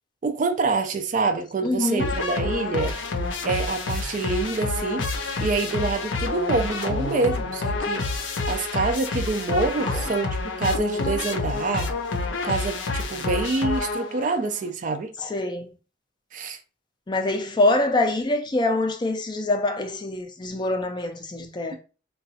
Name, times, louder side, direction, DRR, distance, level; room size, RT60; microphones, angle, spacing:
voice 1, 0.2-3.1 3.4-5.1 5.4-8.2 8.5-11.9 12.4-15.1 16.3-16.6, right 3 dB, 45° right, 0.4 m, -26 dB
voice 2, 1.6-2.1 6.8-7.2 9.8-10.1 15.2-15.7 17.1-21.8, left 2 dB, 25° left, 0.4 m, -25 dB
sound 1, 2.0-14.4, left 3 dB, 80° left, 0.5 m, -28 dB
3.8 x 2.3 x 2.7 m
head